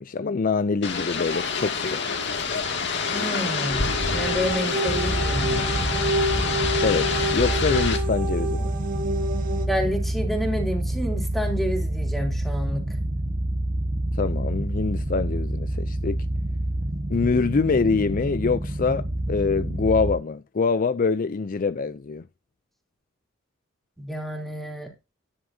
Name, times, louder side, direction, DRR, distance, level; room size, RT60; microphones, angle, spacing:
voice 1, 0.0-2.2 6.8-7.1 7.3-8.7 14.2-16.2 17.1-22.2, left 4 dB, 45° left, 0.5 m, -25 dB
sound 1, 0.8-8.0, left 4 dB, 65° left, 2.3 m, -27 dB
voice 2, 3.1-5.7 9.7-12.8 24.0-24.9, equal, ahead, 3.2 m, -29 dB
sound 2, 3.6-9.7, right 1 dB, 45° right, 2.2 m, -29 dB
sound 3, 4.9-20.2, right 1 dB, 25° right, 1.3 m, -28 dB
11.0 x 10.5 x 2.7 m
head